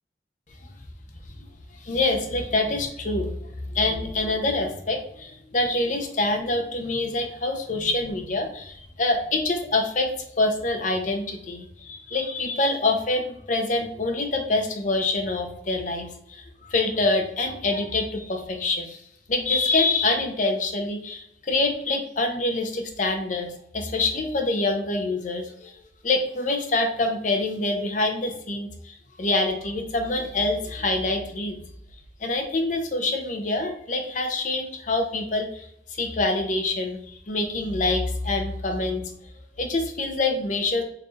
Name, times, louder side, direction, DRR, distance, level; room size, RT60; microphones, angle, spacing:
voice 1, 1.8-10.1 10.4-19.0 19.3-23.5 23.7-25.7 26.0-31.6 32.2-39.1 39.6-40.8, left 2 dB, 45° left, 3 dB, 0.6 m, -26 dB
4.6 x 3.1 x 2.4 m, 0.72 s
head